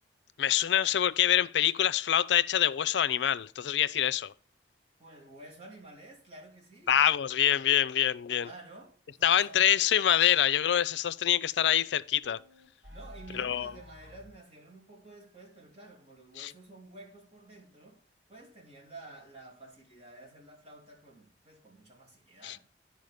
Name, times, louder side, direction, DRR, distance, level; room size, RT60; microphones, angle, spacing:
voice 1, 0.4-4.3 6.9-8.5 9.2-12.4 13.3-13.7 16.4-16.5 22.4-22.6, left 10 dB, 80° left, 0.4 m, -25 dB
voice 2, 5.0-7.0 8.4-9.8 12.9-18.0 18.3-22.6, right 2 dB, 35° right, 2.9 m, -51 dB
sound 1, 12.2-14.4, equal, 90° right, 3.4 m, -50 dB
10.5 x 4.7 x 5.0 m
head